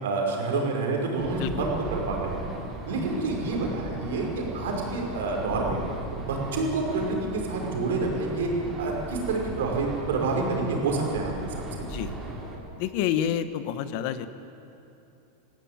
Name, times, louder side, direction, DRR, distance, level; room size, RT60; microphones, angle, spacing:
voice 1, 0.0-2.4 2.9-5.8 6.1-8.5 8.8-11.6, right 3 dB, 85° right, 0 dB, 5.3 m, -28 dB
sound 1, 1.2-12.5, right 2 dB, 20° right, 4.0 m, -37 dB
voice 2, 11.8-12.2 12.7-14.3, left 10 dB, 55° left, 12 dB, 1.2 m, -29 dB
21.0 x 15.5 x 8.9 m, 2.9 s
supercardioid pair, 140°, 0 cm